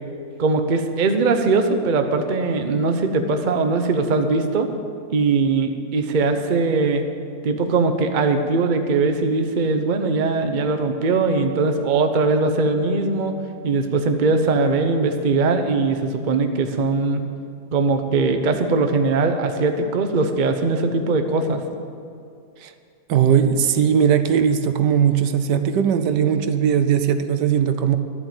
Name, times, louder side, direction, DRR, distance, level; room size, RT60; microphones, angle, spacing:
voice 1, 0.4-4.7 5.1-7.0 7.4-13.3 13.6-17.2 17.7-21.6, right 3 dB, 40° right, 6 dB, 0.7 m, -20 dB
voice 2, 23.1-28.0, right 8 dB, 80° right, 9 dB, 1.3 m, -19 dB
12.0 x 7.7 x 8.9 m, 2.4 s
omnidirectional pair, 1.9 m